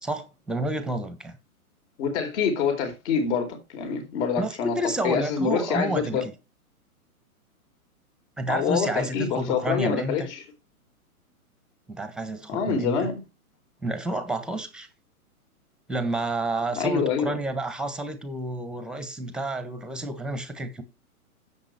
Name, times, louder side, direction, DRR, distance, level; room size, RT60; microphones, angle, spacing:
voice 1, 0.0-1.4 4.4-6.3 8.4-10.3 11.9-13.1 13.8-14.9 15.9-20.8, right 2 dB, ahead, 1.3 m, -30 dB
voice 2, 2.0-4.8 5.0-6.2 8.5-10.4 12.5-13.2 16.7-17.4, left 6 dB, 50° left, 4.2 m, -26 dB
10.5 x 7.6 x 4.4 m
hypercardioid pair, 125°, 44 cm